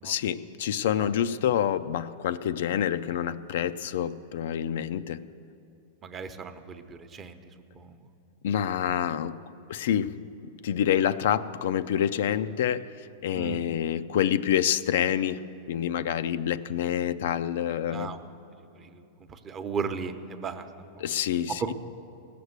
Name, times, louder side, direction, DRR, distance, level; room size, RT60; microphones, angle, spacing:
voice 1, 0.0-5.3 8.4-9.4 9.7-10.2 10.6-12.9 13.2-18.2 21.0-21.7, left 9 dB, 70° left, 13 dB, 0.4 m, -27 dB
voice 2, 6.0-7.4 7.8-8.0 10.9-11.1 13.3-13.6 17.9-18.2 18.7-19.0 19.3-21.1 21.6-21.7, right 5 dB, 25° right, 8 dB, 0.8 m, -36 dB
17.0 x 6.7 x 8.0 m, 2.9 s
hypercardioid pair, 120°, 0 cm